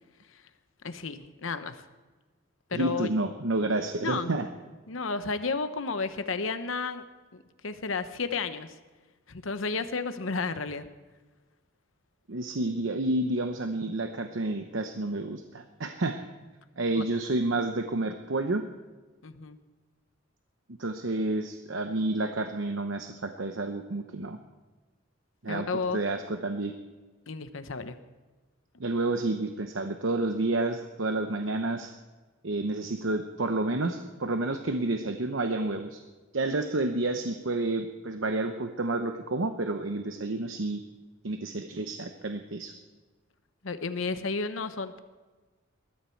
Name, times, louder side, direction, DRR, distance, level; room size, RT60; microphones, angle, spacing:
voice 1, 0.8-1.8 2.7-3.1 4.0-4.4 4.9-7.0 7.3-8.7 9.3-10.9 17.0-17.1 19.2-19.6 25.5-26.0 27.3-28.0 43.6-45.0, left 4 dB, 75° left, 10 dB, 0.9 m, -32 dB
voice 2, 2.7-4.5 12.3-16.2 16.8-18.6 20.8-24.4 25.4-25.7 25.9-26.7 28.8-31.9 32.4-36.0 36.3-40.8 41.2-42.7, right 2 dB, 70° right, 6 dB, 0.9 m, -30 dB
20.5 x 13.0 x 4.6 m, 1.3 s
head